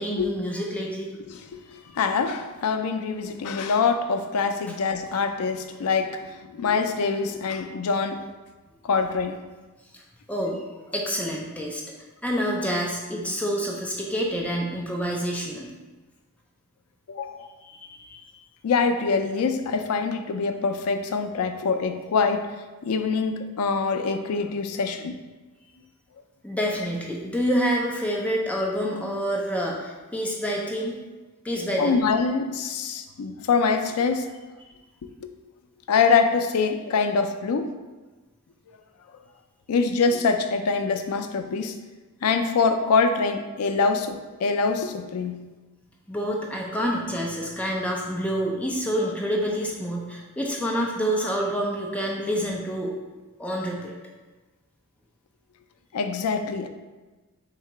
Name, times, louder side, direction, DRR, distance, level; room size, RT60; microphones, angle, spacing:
voice 1, 0.0-1.1 9.9-10.0 10.3-11.8 12.2-15.7 17.6-18.3 26.4-31.0 31.4-32.0 46.1-52.9 53.4-53.9, equal, 5° left, -2 dB, 0.4 m, -27 dB
voice 2, 1.2-8.2 8.8-9.4 17.1-17.5 18.6-22.5 22.8-25.2 31.8-34.3 35.2-35.3 35.9-37.7 39.7-41.8 42.2-45.4 55.9-56.7, left 5 dB, 80° left, 7 dB, 0.4 m, -24 dB
4.0 x 2.8 x 4.5 m, 1.2 s
head